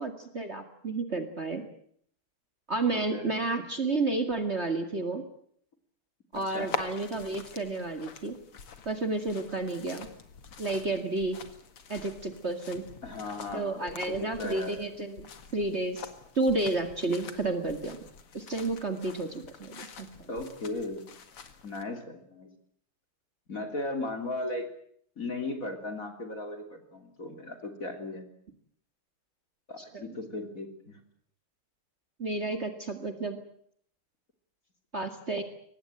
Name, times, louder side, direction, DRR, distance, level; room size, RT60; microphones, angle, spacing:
voice 1, 0.0-1.7 2.7-5.2 6.3-8.4 8.9-10.1 10.6-11.4 11.9-12.8 13.5-16.1 16.4-18.0 18.3-20.3 29.9-30.0 32.2-33.4 34.9-35.4, right 2 dB, 30° right, 9 dB, 2.3 m, -31 dB
sound 1, 6.3-21.8, left 6 dB, 90° left, 2.9 m, -45 dB
voice 2, 6.3-6.7 13.0-14.8 20.3-21.0 21.6-22.5 23.5-24.7 25.2-28.2 29.7-31.0, left 2 dB, 40° left, 6 dB, 3.6 m, -36 dB
24.0 x 20.0 x 9.1 m, 0.65 s
omnidirectional pair, 2.4 m